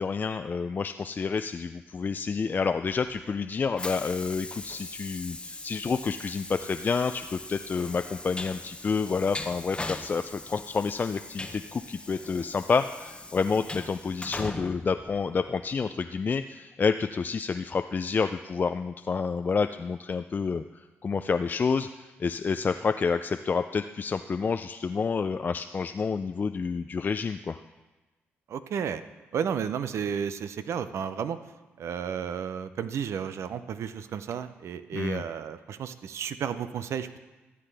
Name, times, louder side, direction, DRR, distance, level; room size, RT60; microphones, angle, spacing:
voice 1, 0.0-27.6 34.9-35.2, left 5 dB, 40° left, 8 dB, 0.3 m, -29 dB
Train, 2.6-15.8, left 2 dB, 20° left, 0.8 m, -41 dB
voice 2, 28.5-29.0 29.3-31.4 31.8-37.2, right 7 dB, 70° right, 12 dB, 0.5 m, -32 dB
13.5 x 7.6 x 3.4 m, 1.1 s
cardioid pair, 65°, 5 cm